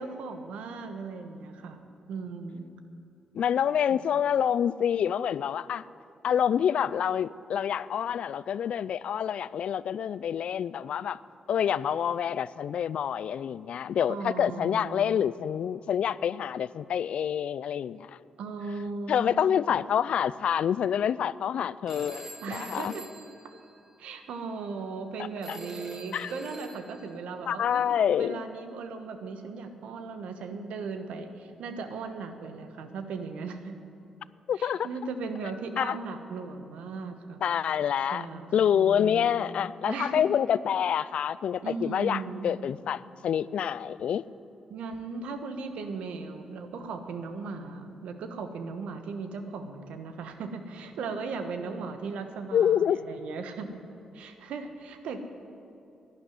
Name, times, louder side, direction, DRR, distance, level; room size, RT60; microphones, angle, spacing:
voice 1, 0.0-2.7 3.9-4.0 14.1-15.3 18.4-19.5 22.4-23.0 24.0-33.8 34.5-37.5 38.1-39.3 39.8-40.2 41.6-42.5 44.7-53.8 54.1-55.2, right 4 dB, 75° right, 7 dB, 1.2 m, -37 dB
voice 2, 3.3-5.8 6.2-11.2 11.5-18.1 19.1-22.9 25.5-25.6 26.1-26.3 27.5-28.4 34.5-34.9 35.8-36.0 37.4-38.3 38.5-44.2 52.5-53.0, left 9 dB, 65° left, 18 dB, 0.4 m, -27 dB
Telephone, 21.9-24.2 25.4-27.1, right 1 dB, 25° right, 2.4 m, -44 dB
11.5 x 10.5 x 9.6 m, 2.6 s
hypercardioid pair, 45°, 2 cm